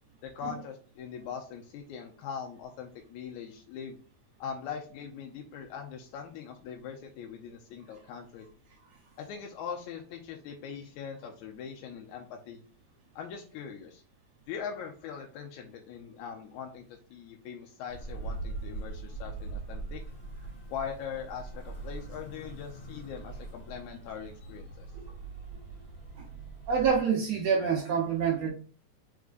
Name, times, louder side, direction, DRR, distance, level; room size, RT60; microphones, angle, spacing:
voice 1, 0.2-4.0 4.4-8.5 9.2-12.6 13.2-14.0 14.5-20.0 20.7-24.9, left 7 dB, 80° left, 2 dB, 1.9 m, -41 dB
sound 1, 17.9-27.0, right 3 dB, 35° left, 1.9 m, -41 dB
voice 2, 26.7-28.5, right 6 dB, 65° right, -1 dB, 1.9 m, -27 dB
4.6 x 3.6 x 2.5 m, 0.40 s
omnidirectional pair, 3.6 m